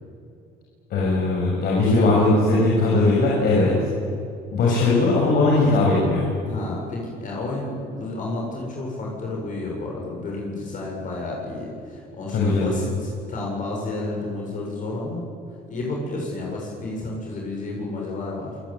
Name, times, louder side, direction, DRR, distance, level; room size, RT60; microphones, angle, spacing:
voice 1, 0.9-3.7 4.5-6.3 12.3-12.7, left 2 dB, 65° left, -3 dB, 7.0 m, -19 dB
voice 2, 1.8-2.4 4.6-4.9 6.4-15.2 15.7-18.5, left 2 dB, 50° left, -2 dB, 7.5 m, -31 dB
27.5 x 20.0 x 9.2 m, 2.6 s
cardioid pair, 110°, 17 cm